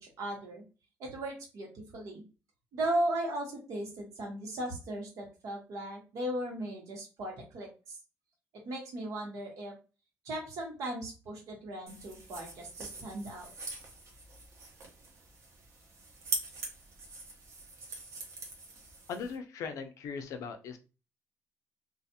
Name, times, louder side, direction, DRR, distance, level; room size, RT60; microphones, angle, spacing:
voice 1, 0.0-0.6 1.0-2.2 2.7-8.0 8.5-9.7 10.2-13.5, right 1 dB, 85° right, 0 dB, 1.1 m, -37 dB
sound 1, 11.9-19.4, right 3 dB, 65° right, 0.8 m, -43 dB
voice 2, 19.1-20.8, left 5 dB, 80° left, 7 dB, 0.4 m, -39 dB
2.4 x 2.3 x 2.7 m, 0.33 s
cardioid pair, 150°, 5 cm